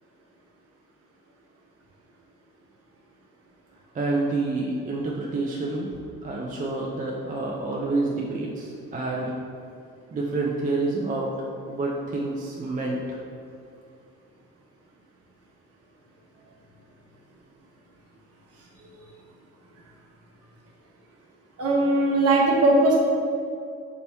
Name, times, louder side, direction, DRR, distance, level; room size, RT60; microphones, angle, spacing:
voice 1, 3.9-5.9 6.2-9.3 10.1-11.3 11.7-13.0, right 2 dB, 25° right, -3 dB, 0.4 m, -28 dB
voice 2, 21.6-23.0, right 2 dB, 50° right, -3 dB, 1.0 m, -19 dB
3.4 x 2.9 x 4.1 m, 2.4 s
cardioid pair, 90°, 30 cm